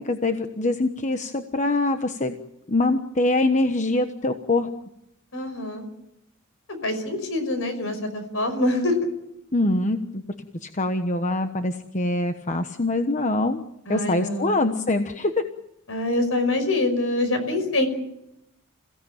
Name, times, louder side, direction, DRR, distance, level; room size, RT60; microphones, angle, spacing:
voice 1, 0.0-2.3 2.7-4.7 9.5-10.2 10.6-13.6 13.9-15.3, left 2 dB, 35° left, 7 dB, 1.2 m, -24 dB
voice 2, 5.3-5.9 6.8-9.0 13.9-14.6 15.9-17.9, left 2 dB, 70° left, 8 dB, 5.5 m, -25 dB
28.0 x 16.5 x 9.0 m, 0.85 s
head